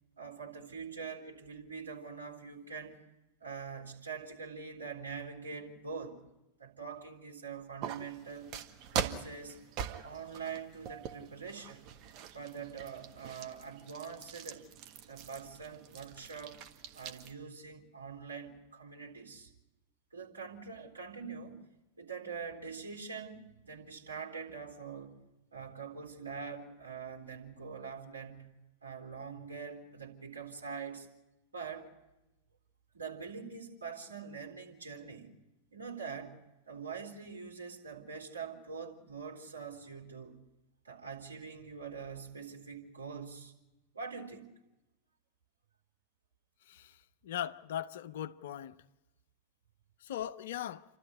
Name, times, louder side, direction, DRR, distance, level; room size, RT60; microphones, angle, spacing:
voice 1, 0.2-3.0 3.4-6.2 6.6-8.6 8.9-9.6 9.9-11.9 12.3-14.7 15.1-16.6 16.9-19.5 20.1-21.6 22.0-25.2 25.5-28.6 28.8-31.1 31.5-31.9 32.9-35.3 35.7-36.4 36.7-40.4 40.8-43.5 43.9-44.5, right 5 dB, 75° right, 3.7 m, -44 dB
sound 1, 7.8-17.3, right 8 dB, 40° right, 1.5 m, -43 dB
voice 2, 46.7-47.0 47.2-48.8 50.0-50.8, left 11 dB, 55° left, 0.7 m, -39 dB
28.5 x 13.0 x 9.8 m
figure-of-eight pair, 90°, 0 cm